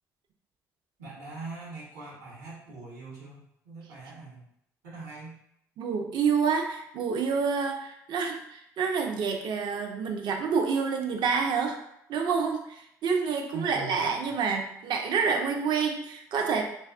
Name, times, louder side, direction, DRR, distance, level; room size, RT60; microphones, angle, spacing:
voice 1, 1.0-4.4 4.8-5.4 13.5-14.3, right 3 dB, 85° right, -4 dB, 0.9 m, -42 dB
voice 2, 5.8-11.8 12.1-16.6, right 5 dB, 60° right, 3 dB, 0.4 m, -28 dB
2.3 x 2.3 x 2.4 m, 0.75 s
hypercardioid pair, 60°, 9 cm